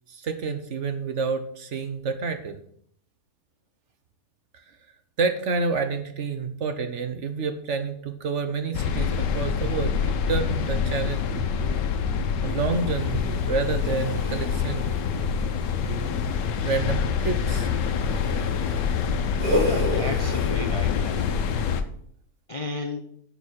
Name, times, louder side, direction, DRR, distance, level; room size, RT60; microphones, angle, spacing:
voice 1, 0.1-2.6 5.2-11.8 12.4-14.9 15.9-16.1 16.6-17.7, right 4 dB, 55° right, 8 dB, 0.9 m, -29 dB
sound 1, 8.7-21.8, left 6 dB, 90° left, 1.4 m, -26 dB
sound 2, 12.7-21.8, left 1 dB, 75° right, 4.6 m, -34 dB
voice 2, 19.6-21.5 22.5-23.0, left 3 dB, 60° left, 4 dB, 0.3 m, -33 dB
7.0 x 6.6 x 6.4 m, 0.67 s
omnidirectional pair, 1.8 m